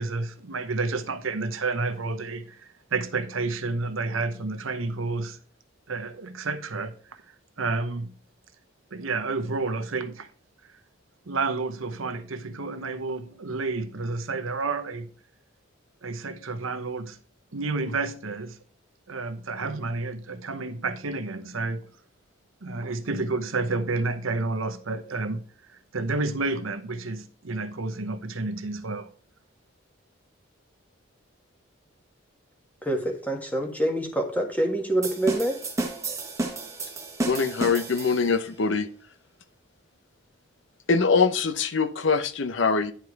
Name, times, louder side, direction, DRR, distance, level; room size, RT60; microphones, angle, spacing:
voice 1, 0.0-5.4 5.9-7.2 7.6-8.1 8.9-10.3 11.3-15.1 16.0-17.2 17.5-18.6 19.1-21.9 22.6-25.4 25.7-29.1, right 3 dB, 90° right, 1.0 m, -30 dB
voice 2, 32.8-35.6, right 1 dB, 10° left, 1.5 m, -26 dB
sound 1, 35.0-38.5, right 2 dB, 15° right, 1.3 m, -32 dB
voice 3, 37.2-38.9 40.9-42.9, left 4 dB, 70° left, 0.8 m, -23 dB
10.5 x 4.8 x 4.7 m
head